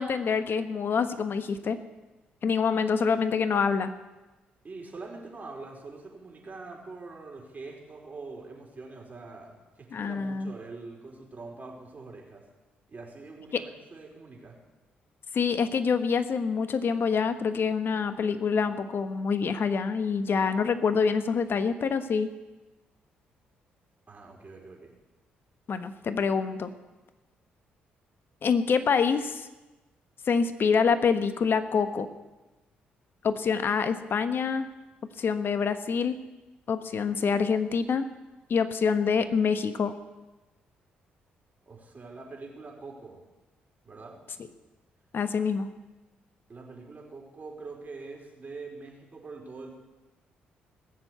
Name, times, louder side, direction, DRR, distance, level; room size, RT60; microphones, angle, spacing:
voice 1, 0.0-1.8 2.4-3.9 9.9-10.5 13.5-13.6 15.3-22.3 25.7-26.7 28.4-29.5 30.3-32.1 33.2-34.7 35.2-36.2 36.7-38.0 38.5-39.9 45.1-45.7, left 5 dB, 55° left, 10 dB, 1.2 m, -26 dB
voice 2, 4.6-12.4 12.9-14.6 24.1-24.9 41.6-43.2 43.8-44.2 46.5-49.7, right 3 dB, 35° right, 0 dB, 4.6 m, -44 dB
18.5 x 7.3 x 8.1 m, 1.1 s
hypercardioid pair, 45°, 5 cm